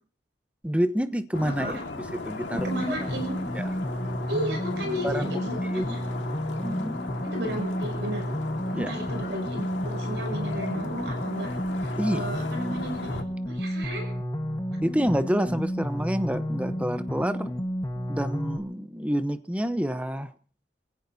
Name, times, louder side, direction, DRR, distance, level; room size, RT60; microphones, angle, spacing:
voice 1, 0.6-1.8 2.1-2.9 3.5-3.7 5.0-5.8 6.6-7.0 8.7-8.9 12.0-12.3 14.8-17.5 18.1-20.3, equal, 5° right, 0.9 m, -28 dB
sound 1, 1.3-13.2, left 3 dB, 90° left, 1.9 m, -37 dB
sound 2, 2.6-18.6, equal, 20° left, 1.4 m, -31 dB
voice 2, 2.6-3.3 4.3-6.1 7.2-8.3 8.7-11.5 11.8-14.1, right 1 dB, 75° right, 6.6 m, -34 dB
29.5 x 16.5 x 2.8 m
head